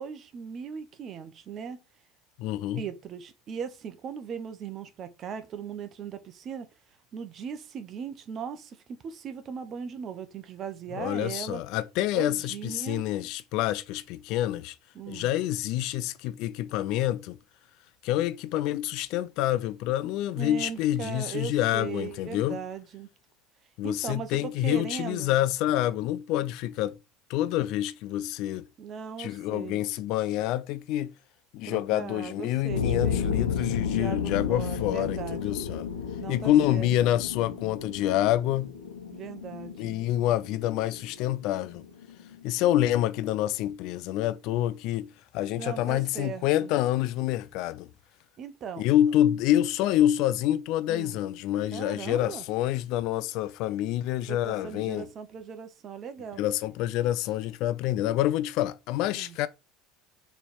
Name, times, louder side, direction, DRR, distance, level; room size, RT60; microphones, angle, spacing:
voice 1, 0.0-1.8 2.8-6.7 7.1-11.6 12.1-13.0 14.9-15.3 20.3-23.1 23.8-25.4 28.8-29.8 31.6-33.5 33.8-35.5 36.2-36.9 39.1-40.0 45.6-46.7 48.4-48.8 50.9-51.2 51.7-52.4 54.3-56.4 59.1-59.4, right 7 dB, 40° right, 1.1 m, -38 dB
voice 2, 2.4-2.8 10.9-14.7 15.1-17.4 18.0-22.6 23.8-27.0 27.3-28.7 29.2-31.1 31.5-35.9 36.3-38.7 39.8-41.8 42.4-45.1 45.3-47.9 48.8-55.1 56.4-59.5, left 13 dB, 55° left, 0.6 m, -27 dB
sound 1, 32.7-42.8, left 7 dB, 80° left, 1.1 m, -33 dB
6.8 x 3.5 x 4.4 m
hypercardioid pair, 75°, 0 cm